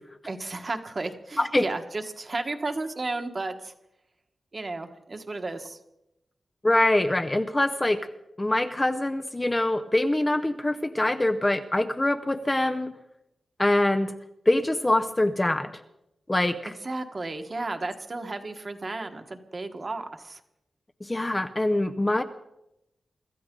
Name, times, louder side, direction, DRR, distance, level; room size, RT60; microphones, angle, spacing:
voice 1, 0.3-3.7 4.5-5.8 16.6-20.4, right 2 dB, 35° right, 6 dB, 1.3 m, -33 dB
voice 2, 6.6-8.0 8.4-12.9 13.6-14.1 14.5-15.7 16.3-16.7 21.0-22.2, left 1 dB, 15° left, 7 dB, 0.6 m, -24 dB
25.0 x 14.0 x 3.8 m, 0.85 s
wide cardioid pair, 150°, 0 cm